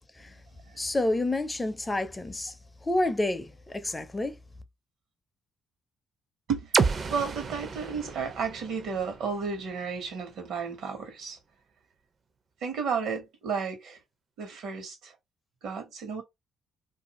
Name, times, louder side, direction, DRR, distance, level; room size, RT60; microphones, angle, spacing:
voice 1, 0.8-2.5 2.8-4.4, left 2 dB, 20° left, 0.4 m, -29 dB
sound 1, 6.7-10.6, right 5 dB, 45° right, 0.4 m, -31 dB
voice 2, 7.1-11.4 12.6-14.0 14.4-15.1 15.6-16.2, right 6 dB, 80° right, 1.1 m, -32 dB
2.6 x 2.4 x 2.9 m
cardioid pair, 90°, 0 cm